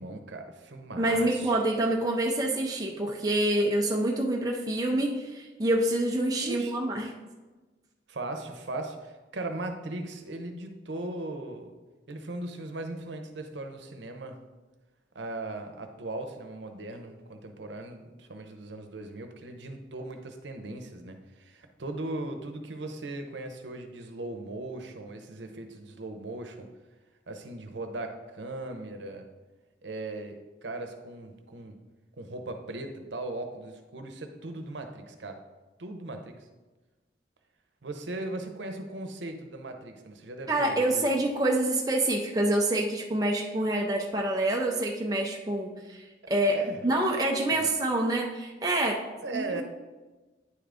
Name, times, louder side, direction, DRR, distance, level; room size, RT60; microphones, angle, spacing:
voice 1, 0.0-1.6 6.4-6.7 8.1-11.7 12.1-14.4 15.1-26.7 27.3-29.3 29.8-31.8 32.2-35.4 35.8-36.3 37.8-41.1 46.4-46.8 47.5-47.6 49.2-49.6, right 2 dB, 85° right, 5 dB, 0.8 m, -38 dB
voice 2, 1.0-7.1 40.5-49.0 49.3-49.6, right 1 dB, 20° right, 0 dB, 0.5 m, -27 dB
9.5 x 3.8 x 3.5 m, 1.2 s
head